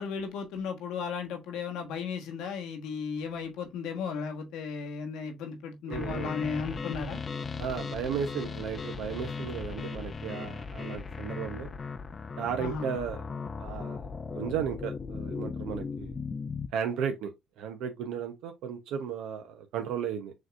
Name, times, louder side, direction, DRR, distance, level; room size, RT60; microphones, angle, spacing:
voice 1, 0.0-7.2 12.6-12.9, left 5 dB, 85° left, 1.3 m, -35 dB
sound 1, 5.9-16.7, left 5 dB, 35° left, 0.5 m, -37 dB
voice 2, 5.9-6.3 7.6-11.7 12.4-13.3 13.6-16.1 16.7-20.3, right 7 dB, 80° right, 0.8 m, -35 dB
6.3 x 3.1 x 2.5 m
supercardioid pair, 80°, 0 cm